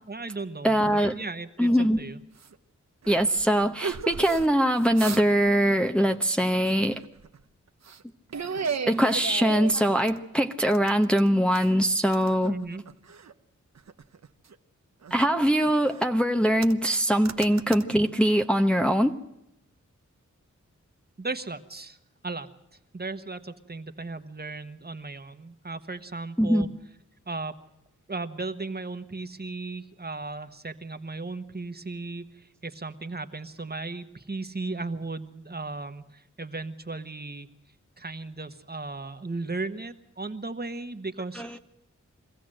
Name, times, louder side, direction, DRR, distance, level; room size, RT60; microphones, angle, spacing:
voice 1, 0.1-2.2 12.5-12.8 21.2-22.0 22.2-22.5 22.9-26.7 27.3-27.6 28.1-37.5 38.0-41.6, right 3 dB, 30° right, 8 dB, 1.3 m, -36 dB
voice 2, 0.6-1.1 1.6-2.0 3.1-7.0 8.9-12.6 15.1-19.2 26.4-26.7 41.4-41.6, equal, 5° left, 4 dB, 0.9 m, -22 dB
sound 1, 2.4-2.6 3.0-4.5 4.8-5.5 5.7-6.0 6.7-7.4 7.8-8.0 8.3-10.2 10.7-11.8 12.1-13.3 13.8-14.6 15.0-16.1 16.6-17.0 17.3-17.8, right 5 dB, 60° right, 1.0 m, -35 dB
23.0 x 15.0 x 7.7 m, 0.87 s
cardioid pair, 55°, 30 cm